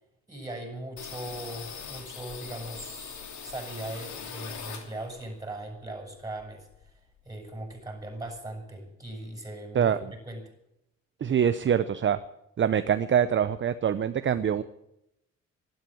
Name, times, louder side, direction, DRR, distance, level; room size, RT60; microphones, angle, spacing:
voice 1, 0.3-7.0 7.2-10.0 10.2-10.4, right 1 dB, 10° right, 4 dB, 7.0 m, -39 dB
sound 1, 1.0-5.3 5.6-7.0 7.3-7.4 7.7-8.4, left 6 dB, 70° left, 3.0 m, -42 dB
voice 2, 11.2-12.2 12.6-14.6, right 8 dB, 40° right, 12 dB, 0.7 m, -24 dB
12.5 x 12.5 x 9.1 m, 0.83 s
cardioid pair, 90°, 30 cm